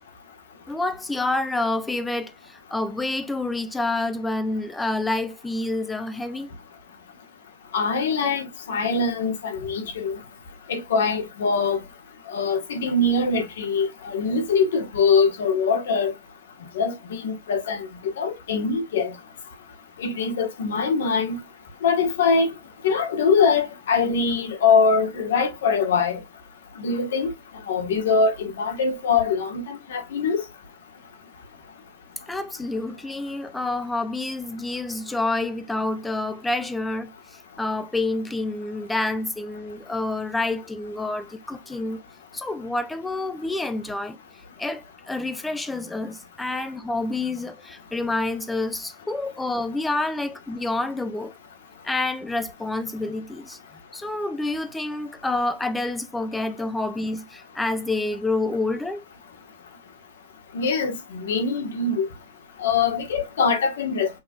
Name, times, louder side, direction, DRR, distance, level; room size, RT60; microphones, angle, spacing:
voice 1, 0.7-6.5 32.3-37.1 37.6-42.0 42.3-44.2 44.6-51.3 51.8-53.6 53.9-59.0, left 2 dB, 5° left, 0.4 m, -28 dB
voice 2, 7.7-10.2 10.7-11.8 12.3-16.1 16.7-17.9 18.2-19.1 20.0-21.4 21.8-22.5 22.8-26.2 26.8-27.3 27.7-30.4 60.5-62.1 62.6-64.2, left 4 dB, 75° left, 1.6 m, -23 dB
6.0 x 3.5 x 2.5 m
supercardioid pair, 175°, 0 cm